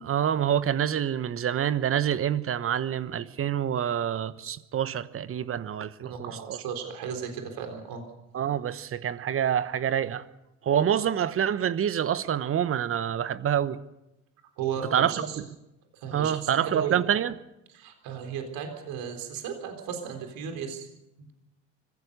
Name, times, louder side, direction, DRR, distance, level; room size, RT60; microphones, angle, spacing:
voice 1, 0.0-6.6 8.3-10.2 10.6-13.8 14.9-15.4 16.1-17.3, right 9 dB, 35° right, 1.1 m, -27 dB
voice 2, 6.0-8.0 14.6-15.4 15.9-17.0 17.7-20.9, right 7 dB, 55° right, 4.0 m, -35 dB
25.5 x 16.0 x 6.8 m
hypercardioid pair, 70°, 39 cm